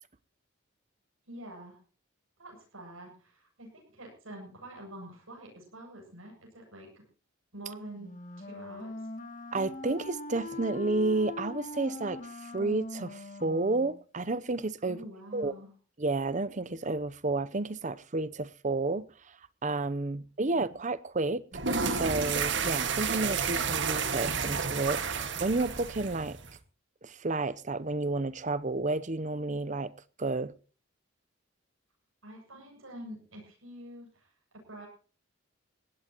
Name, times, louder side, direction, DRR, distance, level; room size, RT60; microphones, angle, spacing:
voice 1, 1.3-1.8 2.4-7.0 7.5-9.1 14.8-15.7 20.4-20.6 32.2-34.9, right 1 dB, 85° right, 7.8 m, -47 dB
Wind instrument woodwind instrument, 8.0-14.0, left 2 dB, 40° left, 2.5 m, -41 dB
voice 2, 9.5-15.0 15.3-15.5 16.0-19.4 19.6-21.4 21.8-26.4 27.0-29.9 30.2-30.5, right 3 dB, 35° right, 0.8 m, -31 dB
sound 1, 21.5-26.6, right 5 dB, 60° right, 1.8 m, -31 dB
20.5 x 16.5 x 3.0 m
head